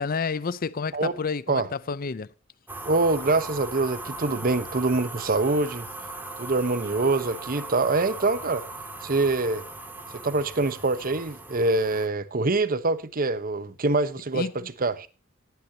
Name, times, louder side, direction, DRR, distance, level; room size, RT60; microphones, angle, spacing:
voice 1, 0.0-2.3 14.3-14.7, left 5 dB, 45° left, 0.6 m, -30 dB
sound 1, 2.7-12.1, right 2 dB, 10° right, 1.9 m, -39 dB
voice 2, 2.8-5.9 6.4-8.6 9.0-9.6 10.1-14.5 14.8-15.1, right 3 dB, 45° right, 1.0 m, -25 dB
18.5 x 9.3 x 2.8 m
head